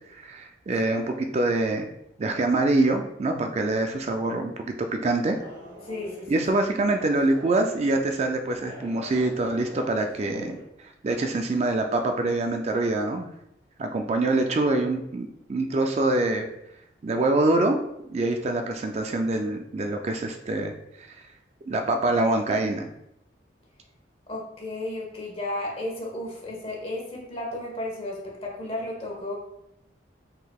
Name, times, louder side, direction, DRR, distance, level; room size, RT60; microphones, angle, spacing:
voice 1, 0.1-1.9 2.2-5.4 6.3-13.3 13.8-16.5 17.0-17.8 18.1-21.2 21.7-22.9, right 2 dB, 35° right, 4 dB, 0.4 m, -25 dB
sound 1, 5.1-10.6, left 1 dB, 80° right, 1.4 m, -45 dB
voice 2, 5.8-6.4 24.3-29.3, left 1 dB, 30° left, -2 dB, 1.2 m, -33 dB
5.5 x 3.8 x 2.3 m, 0.80 s
head